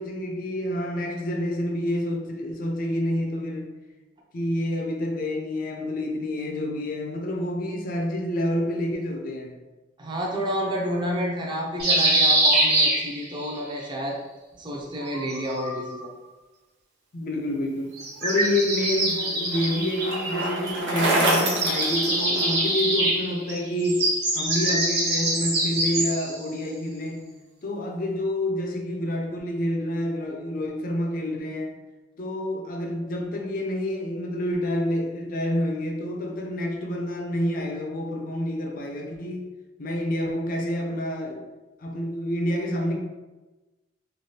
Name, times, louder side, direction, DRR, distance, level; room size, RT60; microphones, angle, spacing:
voice 1, 0.0-3.7 4.3-9.5 17.1-17.9 18.2-24.1 24.3-27.3 27.6-31.7 32.2-39.5 39.8-41.5 41.8-43.0, left 1 dB, 45° left, 1 dB, 0.5 m, -28 dB
voice 2, 10.0-14.2 14.6-16.1, equal, 25° right, -2 dB, 0.5 m, -29 dB
sound 1, 11.8-13.5 14.9-16.0 17.9-20.9 21.2-26.4, right 1 dB, 60° right, 1.2 m, -24 dB
Bicycle, 18.4-22.8, right 1 dB, 75° right, 0.7 m, -27 dB
3.3 x 2.3 x 2.7 m, 1.2 s
head